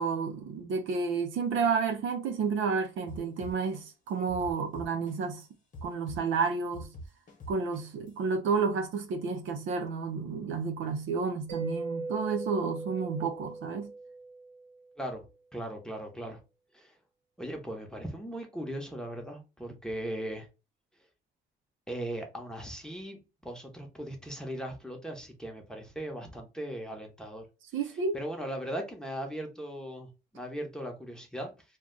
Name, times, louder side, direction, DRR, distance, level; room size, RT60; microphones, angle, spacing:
voice 1, 0.0-5.4 5.8-6.9 7.5-13.9 27.7-28.2, right 5 dB, 75° right, 0.6 m, -31 dB
sound 1, 3.1-5.4 5.7-8.1, equal, 40° left, 1.0 m, -44 dB
Mallet percussion, 11.5-15.0, right 3 dB, 40° right, 0.8 m, -39 dB
voice 2, 15.5-16.4 16.7-16.9 17.4-20.5 21.9-27.5 27.8-31.5, right 1 dB, 5° left, 0.8 m, -38 dB
2.4 x 2.2 x 3.7 m
cardioid pair, 90°, 20 cm